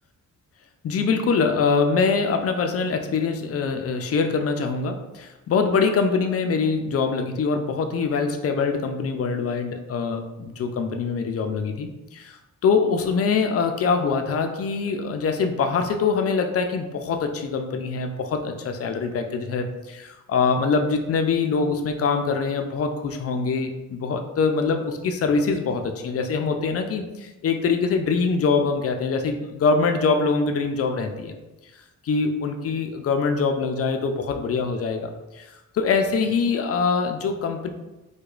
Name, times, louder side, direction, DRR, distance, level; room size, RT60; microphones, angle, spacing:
voice 1, 0.8-31.4 32.0-35.4 35.7-37.7, left 5 dB, 45° left, 5 dB, 0.4 m, -24 dB
4.8 x 2.2 x 2.4 m, 1.0 s
cardioid pair, 110°, 33 cm